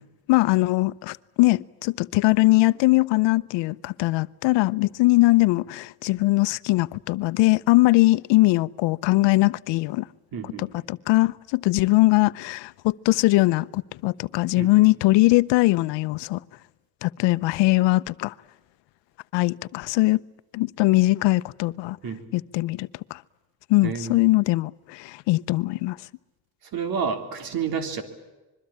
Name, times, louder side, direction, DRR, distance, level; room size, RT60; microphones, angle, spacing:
voice 1, 0.3-10.1 10.4-16.4 17.0-18.3 19.3-20.2 20.5-22.0 22.3-23.2 23.7-26.0, left 20 dB, 90° left, 0.8 m, -21 dB
voice 2, 10.3-10.8 14.6-14.9 22.0-22.3 23.8-24.2 26.7-28.0, right 6 dB, 55° right, 3.4 m, -30 dB
26.5 x 22.5 x 8.7 m
cardioid pair, 130°, 42 cm